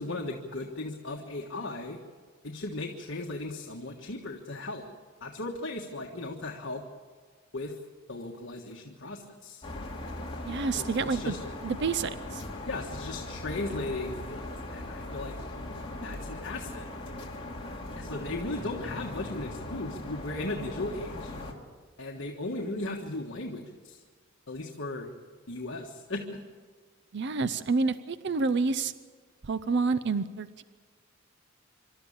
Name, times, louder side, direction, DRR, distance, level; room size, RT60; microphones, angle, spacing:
voice 1, 0.0-2.0 2.4-4.9 5.2-6.8 7.5-7.7 8.1-9.7 10.8-11.4 12.7-15.4 16.0-16.9 18.0-21.3 22.0-24.0 24.5-25.1 25.5-26.4, left 2 dB, 60° left, 0 dB, 1.5 m, -36 dB
sound 1, 9.6-21.5, left 1 dB, 25° left, 2.7 m, -39 dB
voice 2, 10.5-11.4 11.6-12.4 27.1-28.9 29.4-30.6, right 4 dB, 55° right, 13 dB, 0.6 m, -28 dB
26.5 x 13.0 x 8.7 m, 1.5 s
head